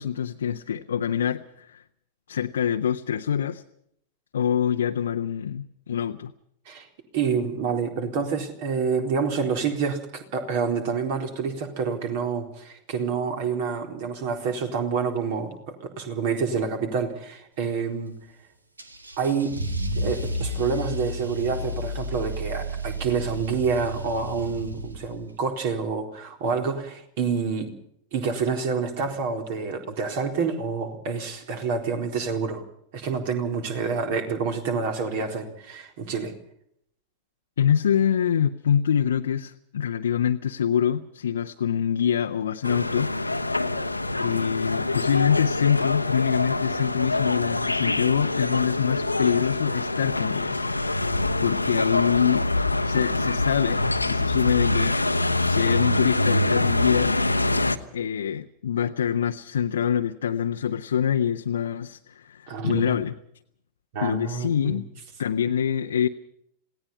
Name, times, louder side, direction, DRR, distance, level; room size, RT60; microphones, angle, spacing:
voice 1, 0.0-1.8 2.3-3.6 4.3-6.3 37.6-43.1 44.2-50.9 51.4-52.5 52.8-57.1 57.9-63.1 64.0-64.8 65.2-66.1, left 8 dB, 65° left, 5 dB, 0.8 m, -25 dB
voice 2, 7.1-18.1 19.2-19.5 20.0-27.7 28.1-32.6 32.9-36.3 62.5-63.0 63.9-64.8, right 5 dB, 50° right, 5 dB, 4.1 m, -28 dB
Car / Engine starting / Accelerating revving vroom, 18.8-25.3, equal, 80° right, 2.0 m, -32 dB
sound 1, 42.6-57.8, left 2 dB, 85° left, 1.0 m, -25 dB
27.5 x 18.0 x 5.6 m, 0.70 s
figure-of-eight pair, 90°, 0 cm